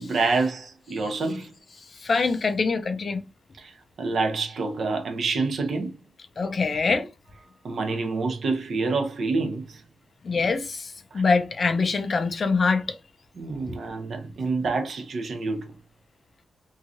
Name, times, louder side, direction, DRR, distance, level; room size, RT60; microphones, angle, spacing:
voice 1, 0.0-1.5 3.6-3.7 4.0-5.9 7.6-9.8 11.1-11.2 13.4-15.6, right 3 dB, 55° right, 0.7 m, -27 dB
voice 2, 1.8-3.2 6.4-7.1 10.2-13.0, left 4 dB, 40° left, 0.4 m, -24 dB
3.0 x 2.7 x 2.4 m
wide cardioid pair, 155°, 0 cm